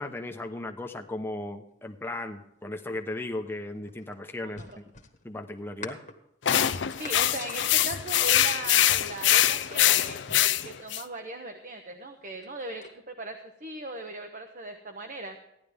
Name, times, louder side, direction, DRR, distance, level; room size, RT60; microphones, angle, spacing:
voice 1, 0.0-4.7 5.2-6.0, left 2 dB, 10° left, 3 dB, 0.9 m, -36 dB
sound 1, 3.4-8.7 9.1-11.2 12.2-13.0, left 3 dB, 40° left, 1.4 m, -47 dB
voice 2, 4.4-4.8 6.9-10.2 10.6-15.4, right 2 dB, 45° right, 5 dB, 1.0 m, -38 dB
sound 2, 6.5-11.0, left 12 dB, 80° left, 0.6 m, -23 dB
15.5 x 11.0 x 3.5 m, 0.83 s
head